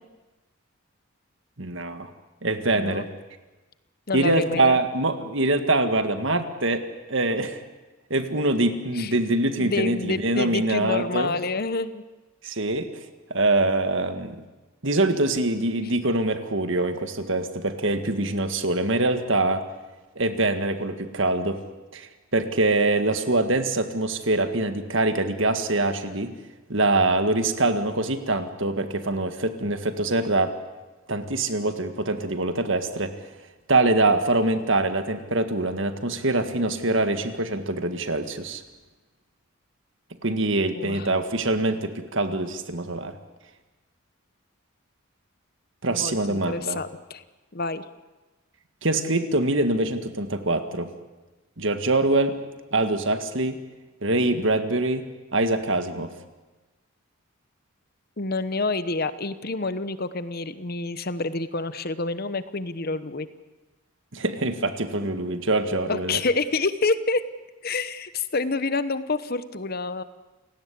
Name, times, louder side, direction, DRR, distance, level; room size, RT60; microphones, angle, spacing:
voice 1, 1.6-2.1 2.4-3.1 4.1-6.8 7.1-7.6 8.1-11.3 12.4-12.9 13.3-14.4 14.8-19.6 20.2-21.6 21.9-26.3 26.7-30.5 31.1-33.1 33.7-38.6 40.2-43.2 45.8-46.8 48.8-50.9 51.6-52.4 52.7-53.6 54.0-56.1 64.1-66.2, right 2 dB, 60° right, 8 dB, 1.9 m, -24 dB
voice 2, 2.7-3.0 4.1-4.8 9.0-9.1 9.6-12.0 40.8-41.1 45.9-47.2 47.5-47.8 58.2-63.3 65.8-67.2 67.6-70.0, left 3 dB, 45° left, 13 dB, 1.0 m, -28 dB
29.0 x 17.5 x 8.5 m, 1.2 s
head